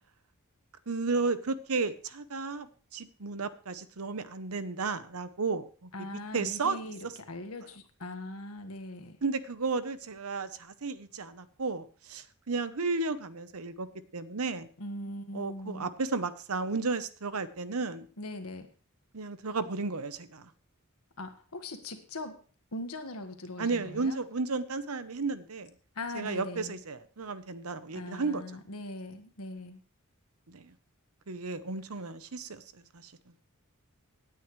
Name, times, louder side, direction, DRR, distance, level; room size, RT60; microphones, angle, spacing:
voice 1, 0.9-2.7 2.9-5.9 6.3-6.8 9.2-13.9 14.1-14.7 15.3-18.1 19.1-20.5 23.6-25.7 26.1-28.4 30.5-30.7 31.3-33.1, right 4 dB, 80° right, 13 dB, 0.9 m, -33 dB
voice 2, 5.9-9.2 14.8-15.9 18.2-18.7 21.2-22.4 22.7-24.2 25.9-26.8 27.9-29.8, left 1 dB, 75° left, 6 dB, 1.7 m, -40 dB
17.5 x 9.4 x 3.2 m, 0.39 s
head